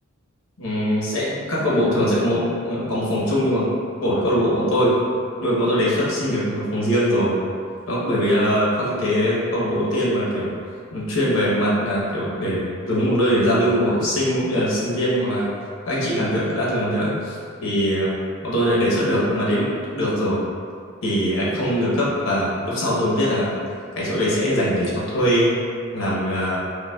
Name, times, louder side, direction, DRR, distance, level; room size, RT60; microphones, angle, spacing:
voice 1, 0.6-3.7 4.0-4.9 5.4-7.3 7.9-10.5 10.9-15.5 15.8-18.1 18.4-20.4 21.0-23.5 24.0-25.5 25.9-26.6, equal, 80° left, -7 dB, 1.0 m, -21 dB
4.6 x 2.2 x 2.3 m, 2.3 s
head